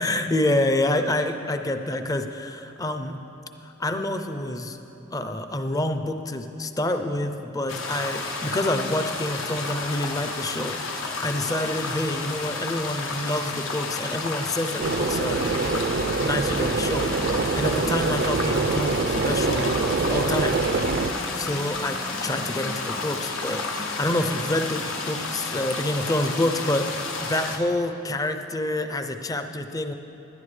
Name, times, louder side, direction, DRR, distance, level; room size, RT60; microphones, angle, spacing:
voice 1, 0.0-3.2 3.6-4.8 5.1-15.9 16.2-20.6 21.4-23.7 24.0-29.9, left 1 dB, 20° left, 7 dB, 0.5 m, -27 dB
sound 1, 7.7-27.6, left 3 dB, 80° left, 1.1 m, -31 dB
sound 2, 14.6-25.8, left 1 dB, 55° left, 1.4 m, -42 dB
sound 3, 14.8-21.1, right 4 dB, 50° right, 0.4 m, -25 dB
17.0 x 11.5 x 3.2 m, 3.0 s
head